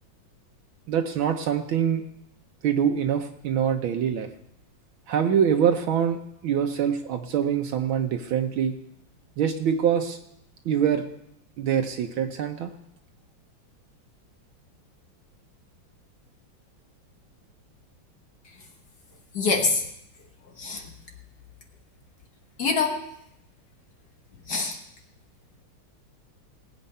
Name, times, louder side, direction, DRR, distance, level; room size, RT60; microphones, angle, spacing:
voice 1, 0.9-2.0 2.6-4.3 5.1-8.7 9.4-10.2 10.6-11.0 11.6-12.7, right 8 dB, 75° right, 5 dB, 1.6 m, -24 dB
voice 2, 19.3-19.8 20.6-20.9 22.6-23.1 24.5-24.8, left 4 dB, 50° left, 3 dB, 1.7 m, -25 dB
19.0 x 8.4 x 5.5 m, 0.76 s
omnidirectional pair, 2.3 m